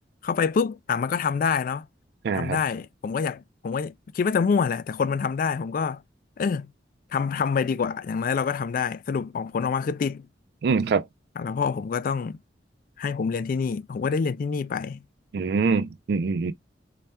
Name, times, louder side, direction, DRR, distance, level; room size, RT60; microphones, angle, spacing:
voice 1, 0.2-1.9 2.3-6.0 6.4-6.7 7.1-10.3 11.4-12.4 13.0-15.0, left 5 dB, 50° left, 0.3 m, -26 dB
voice 2, 2.2-2.6 10.6-11.0 15.3-16.5, right 4 dB, 65° right, 0.4 m, -24 dB
4.2 x 2.1 x 3.3 m
head